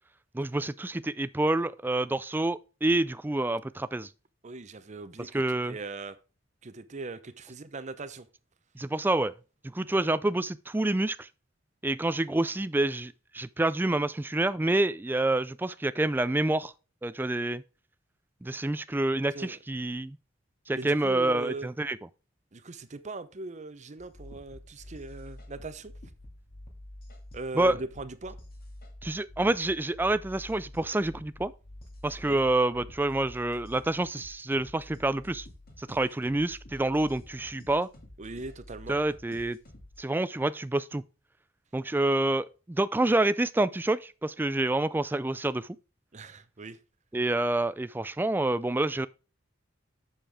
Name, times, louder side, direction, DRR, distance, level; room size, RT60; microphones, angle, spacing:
voice 1, 0.3-4.1 5.2-5.8 8.8-9.3 9.6-11.3 11.8-16.7 17.0-17.6 18.4-20.2 20.7-22.0 27.5-27.8 29.0-31.5 32.0-35.5 35.8-37.9 38.9-39.6 40.0-41.0 41.7-45.7 47.1-49.1, right 2 dB, 10° right, 0.4 m, -28 dB
voice 2, 4.4-6.2 6.6-8.3 19.3-19.6 20.7-21.7 22.5-25.9 27.3-28.4 32.2-32.4 38.2-39.0 46.1-46.8, right 3 dB, 40° right, 0.7 m, -40 dB
sound 1, 24.0-40.0, left 1 dB, 50° left, 2.3 m, -48 dB
7.8 x 6.7 x 3.5 m
head